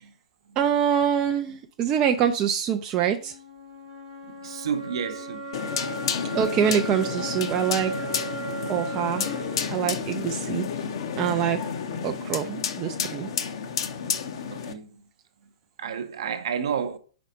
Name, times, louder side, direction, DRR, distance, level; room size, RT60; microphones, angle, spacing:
voice 1, 0.6-3.3 6.3-7.9 8.7-9.3 9.7-10.7 11.2-11.6 12.0-13.3, right 8 dB, 25° right, 0.4 m, -25 dB
sound 1, 3.0-10.9, right 3 dB, 90° left, 3.5 m, -38 dB
voice 2, 4.4-5.4 14.5-14.9 15.8-17.0, right 7 dB, 55° right, 0.8 m, -30 dB
sound 2, 5.5-14.7, left 7 dB, 50° left, 0.7 m, -31 dB
5.2 x 4.1 x 5.1 m
figure-of-eight pair, 110°, 3 cm